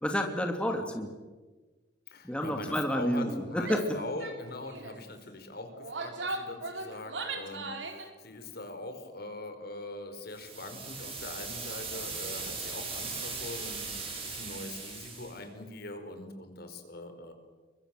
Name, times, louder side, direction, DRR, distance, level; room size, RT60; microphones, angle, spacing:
voice 1, 0.0-1.1 2.2-4.0, equal, 5° left, 3 dB, 2.5 m, -30 dB
voice 2, 2.1-17.3, left 2 dB, 60° left, 7 dB, 4.7 m, -42 dB
Female speech woman speaking / Yell, 3.6-3.9 4.2-4.4 4.7-5.0 5.7-8.1, right 3 dB, 75° right, 3.8 m, -38 dB
sound 1, 10.3-15.4, right 4 dB, 30° right, 6.9 m, -39 dB
29.5 x 23.0 x 7.6 m, 1.3 s
head